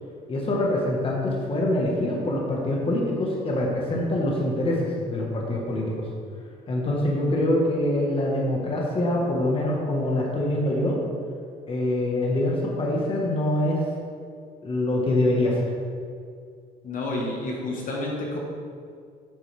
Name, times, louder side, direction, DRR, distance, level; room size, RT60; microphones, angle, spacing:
voice 1, 0.3-6.0 6.7-11.0 11.7-13.8 14.6-15.6, left 1 dB, 30° left, -2 dB, 1.4 m, -24 dB
voice 2, 16.8-18.4, left 2 dB, 50° left, -2 dB, 1.5 m, -30 dB
8.6 x 6.1 x 3.4 m, 2.2 s
cardioid pair, 110°, 17 cm